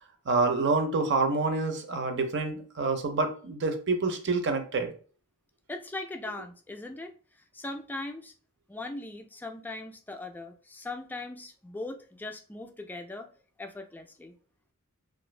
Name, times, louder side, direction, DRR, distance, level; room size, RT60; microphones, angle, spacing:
voice 1, 0.3-4.9, right 3 dB, 55° right, 7 dB, 0.6 m, -27 dB
voice 2, 5.7-7.1 7.5-8.3 8.7-13.3 13.6-14.3, left 2 dB, 10° left, 5 dB, 0.3 m, -39 dB
2.5 x 2.4 x 3.1 m, 0.41 s
head